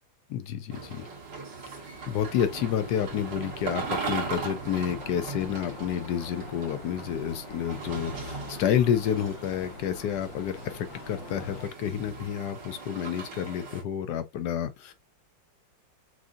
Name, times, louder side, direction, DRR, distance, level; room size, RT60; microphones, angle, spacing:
voice 1, 0.3-1.1 2.1-14.9, left 9 dB, 70° left, 1.1 m, -29 dB
sound 1, 0.7-13.8, right 4 dB, 65° right, 2.1 m, -39 dB
sound 2, 2.3-11.7, left 3 dB, 85° left, 1.9 m, -45 dB
6.2 x 2.7 x 2.4 m
omnidirectional pair, 2.0 m